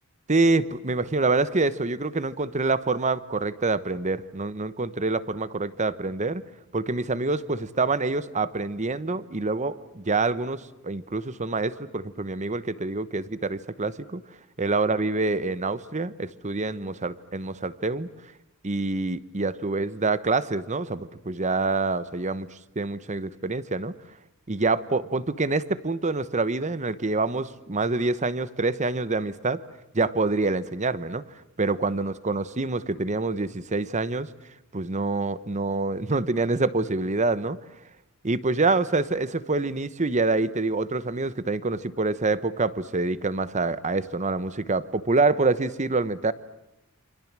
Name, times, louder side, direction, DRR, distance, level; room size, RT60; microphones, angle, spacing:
voice 1, 0.3-6.4 6.7-14.2 14.6-18.1 18.6-22.5 22.8-23.9 24.5-29.6 29.9-31.2 31.6-34.3 34.7-37.6 38.2-46.3, right 3 dB, 35° right, 15 dB, 1.0 m, -26 dB
28.5 x 26.0 x 7.5 m, 0.87 s
head